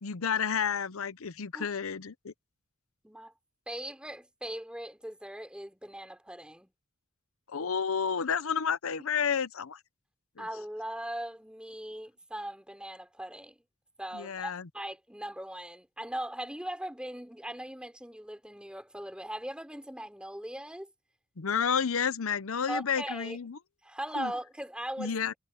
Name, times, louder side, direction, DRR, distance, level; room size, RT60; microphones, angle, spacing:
voice 1, 0.0-2.3 7.5-9.8 10.4-10.5 14.1-14.7 21.4-23.6 24.1-24.3 25.0-25.3, left 7 dB, 80° left, 0.7 m, -31 dB
voice 2, 3.7-6.7 10.4-13.6 14.0-20.9 22.7-23.4 23.8-25.4, right 1 dB, 5° right, 4.2 m, -39 dB
head